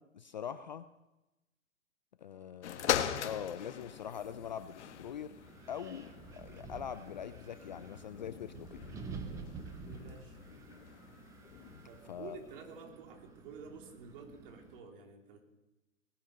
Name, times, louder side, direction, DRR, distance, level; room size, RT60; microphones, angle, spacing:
voice 1, 0.1-0.9 2.2-5.4 5.7-8.8 12.1-12.4, left 8 dB, 35° left, 12 dB, 0.4 m, -43 dB
sound 1, 2.6-12.2 12.8-12.9, left 9 dB, 55° left, 1.2 m, -41 dB
Wind, 4.8-14.8, right 5 dB, 10° right, 0.6 m, -50 dB
voice 2, 9.8-10.4 11.8-15.4, right 5 dB, 40° right, 2 dB, 3.2 m, -50 dB
19.0 x 10.0 x 6.6 m, 1.0 s
hypercardioid pair, 135°, 41 cm